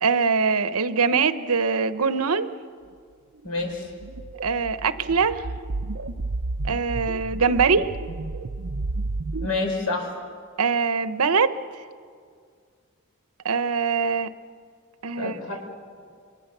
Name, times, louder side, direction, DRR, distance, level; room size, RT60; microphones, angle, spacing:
voice 1, 0.0-2.5 4.4-5.4 6.6-7.9 10.6-11.6 13.4-14.3 15.0-15.4, right 5 dB, 85° right, 12 dB, 0.9 m, -22 dB
voice 2, 3.4-3.9 9.4-10.1 15.1-15.6, left 3 dB, 80° left, 2 dB, 5.1 m, -28 dB
sound 1, 3.7-9.5, right 2 dB, 60° right, 0.7 m, -32 dB
29.5 x 24.0 x 6.8 m, 2.1 s
head